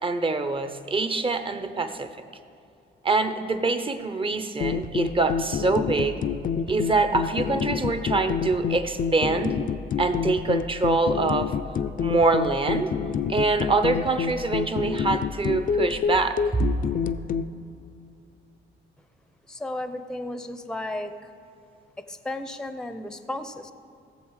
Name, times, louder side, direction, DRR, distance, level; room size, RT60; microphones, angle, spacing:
voice 1, 0.0-2.1 3.0-6.2 6.7-9.6 10.0-11.5 12.0-12.9 13.3-16.4, right 3 dB, 25° right, 9 dB, 0.8 m, -24 dB
sound 1, 4.6-17.5, left 6 dB, 45° left, 0.5 m, -28 dB
voice 2, 19.5-21.1 22.0-23.7, left 1 dB, 5° left, 10 dB, 0.7 m, -34 dB
16.5 x 7.0 x 4.8 m, 2.7 s
cardioid pair, 90°, 20 cm